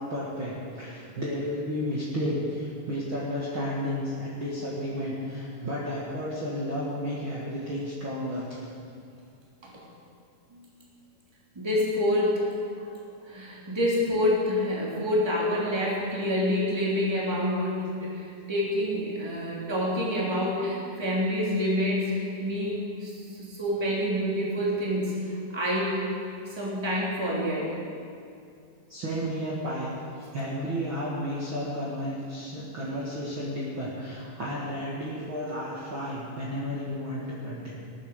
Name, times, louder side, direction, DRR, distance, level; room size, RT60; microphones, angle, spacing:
voice 1, 0.0-8.6 28.9-37.7, equal, 40° right, -6 dB, 2.3 m, -32 dB
voice 2, 11.5-12.5 12.7-12.9 13.2-26.1 26.5-27.7, left 1 dB, 10° right, -4 dB, 2.6 m, -27 dB
18.5 x 9.7 x 6.7 m, 2.5 s
omnidirectional pair, 4.0 m